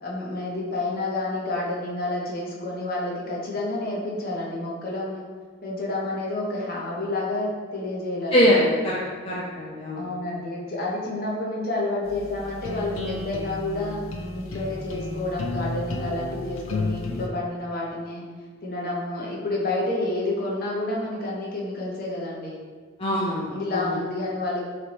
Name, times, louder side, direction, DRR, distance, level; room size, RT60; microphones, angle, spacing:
voice 1, 0.0-5.3 5.6-9.0 10.0-14.0 14.3-18.2 18.6-22.6 23.5-24.6, left 2 dB, 50° left, -4 dB, 0.8 m, -29 dB
voice 2, 8.3-9.0 9.2-10.1 23.0-24.0, equal, 30° left, -5 dB, 0.4 m, -23 dB
sound 1, 12.0-17.3, left 3 dB, 90° left, 0.5 m, -32 dB
4.0 x 3.3 x 2.9 m, 1.5 s
head